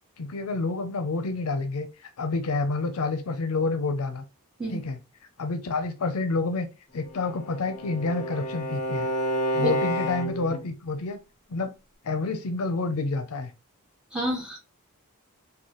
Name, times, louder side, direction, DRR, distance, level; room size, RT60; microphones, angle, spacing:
voice 1, 0.2-4.2 4.7-5.0 5.4-6.7 6.9-9.1 9.5-11.2 11.5-11.7 12.0-13.5, left 3 dB, 75° left, 8 dB, 0.5 m, -28 dB
Bowed string instrument, 7.0-10.6, equal, 35° left, 0.6 m, -30 dB
voice 2, 14.1-14.6, right 1 dB, 5° right, -4 dB, 1.5 m, -29 dB
3.9 x 2.3 x 3.0 m, 0.28 s
head